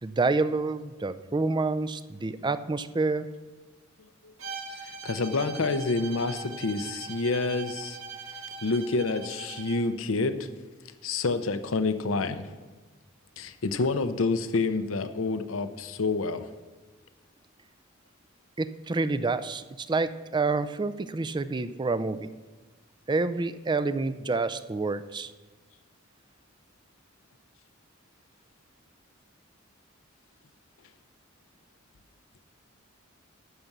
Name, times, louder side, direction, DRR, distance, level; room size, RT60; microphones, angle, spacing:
voice 1, 0.0-3.3 18.6-22.3 23.1-25.3, right 3 dB, 20° right, 12 dB, 0.4 m, -28 dB
Bowed string instrument, 4.4-9.9, right 4 dB, 80° right, 2.0 m, -41 dB
voice 2, 4.8-8.0 8.6-10.5 11.0-12.6 13.4-16.5, left 3 dB, 75° left, 10 dB, 0.7 m, -28 dB
12.5 x 6.0 x 6.8 m, 1.3 s
head